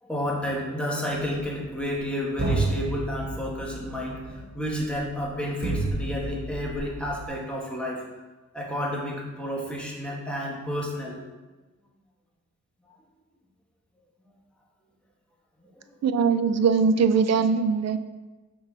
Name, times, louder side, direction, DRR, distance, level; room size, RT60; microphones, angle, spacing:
voice 1, 0.0-8.0 8.5-11.2 15.8-16.0, equal, 5° left, -3 dB, 1.7 m, -31 dB
sound 1, 1.4-2.0 2.4-7.3, right 2 dB, 30° right, 1.7 m, -31 dB
voice 2, 16.0-18.0, right 5 dB, 60° right, 10 dB, 0.5 m, -21 dB
6.4 x 4.6 x 5.6 m, 1.2 s
wide cardioid pair, 100°, 29 cm